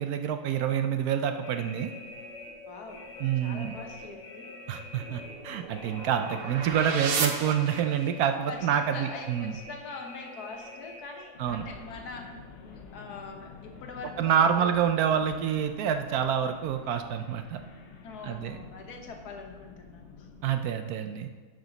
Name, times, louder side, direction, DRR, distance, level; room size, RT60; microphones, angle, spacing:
voice 1, 0.0-1.9 3.2-3.8 4.7-9.5 11.4-11.6 14.2-17.6 18.2-18.6 20.4-21.3, right 8 dB, 70° right, 7 dB, 1.0 m, -27 dB
sound 1, 1.4-20.6, left 2 dB, 50° left, 1.0 m, -47 dB
voice 2, 2.7-3.0 3.4-4.5 8.5-12.3 12.6-14.7 18.0-20.3, left 4 dB, 70° left, 3 dB, 1.5 m, -43 dB
sound 2, 4.9-8.3, right 5 dB, 55° right, 0.6 m, -34 dB
11.5 x 5.1 x 3.9 m, 1.4 s
omnidirectional pair, 1.8 m